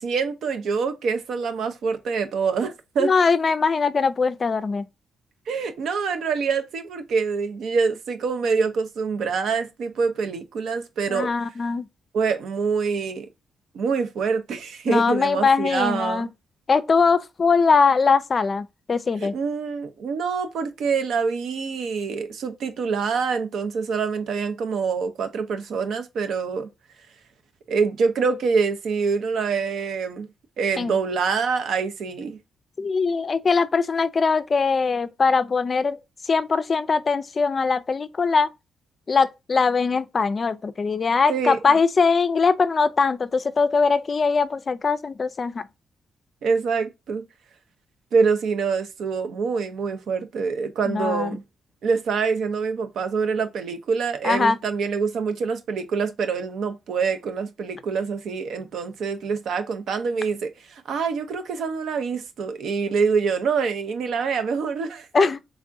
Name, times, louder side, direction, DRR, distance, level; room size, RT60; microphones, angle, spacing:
voice 1, 0.0-3.1 5.5-11.3 12.1-13.3 13.7-16.3 19.2-26.7 27.7-30.3 30.6-32.4 41.3-41.6 46.4-47.2 48.1-51.4 51.8-65.3, right 5 dB, 75° right, 0.6 m, -25 dB
voice 2, 3.0-4.8 11.1-11.9 14.9-16.3 16.7-19.3 30.8-31.0 32.8-36.0 36.2-38.5 39.1-45.6 50.9-51.3 54.2-54.6 65.1-65.4, left 4 dB, 40° left, 0.3 m, -21 dB
3.5 x 3.4 x 2.5 m
cardioid pair, 85°, 0 cm